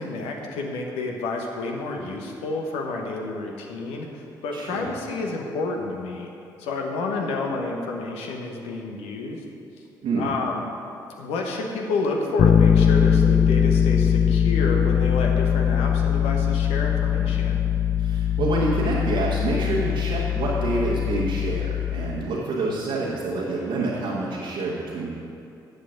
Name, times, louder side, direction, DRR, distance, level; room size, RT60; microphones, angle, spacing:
voice 1, 0.0-6.3 6.6-9.4 10.1-10.7 11.2-17.6, left 3 dB, 70° left, 1 dB, 1.2 m, -29 dB
voice 2, 4.5-4.9 10.0-10.2 18.0-25.1, right 3 dB, 60° right, -5 dB, 1.5 m, -27 dB
Bass guitar, 12.4-22.3, left 8 dB, 45° left, 0.4 m, -21 dB
13.0 x 8.2 x 3.8 m, 2.7 s
figure-of-eight pair, 40°, 11 cm